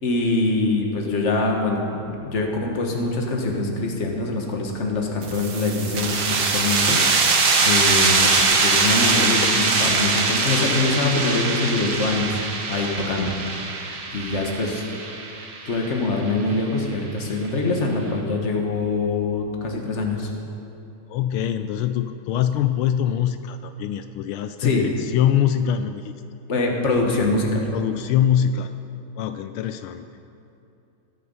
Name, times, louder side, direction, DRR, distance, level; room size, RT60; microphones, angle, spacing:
voice 1, 0.0-13.6 14.1-14.8 15.6-20.3 24.6-24.9 26.5-27.7, left 3 dB, 35° left, 1 dB, 1.7 m, -24 dB
sound 1, 5.2-16.6, right 4 dB, 70° right, 2.3 m, -22 dB
voice 2, 21.1-26.1 27.7-28.7 29.2-30.0, left 9 dB, 80° left, 9 dB, 1.4 m, -23 dB
21.5 x 8.5 x 5.5 m, 2.7 s
omnidirectional pair, 2.4 m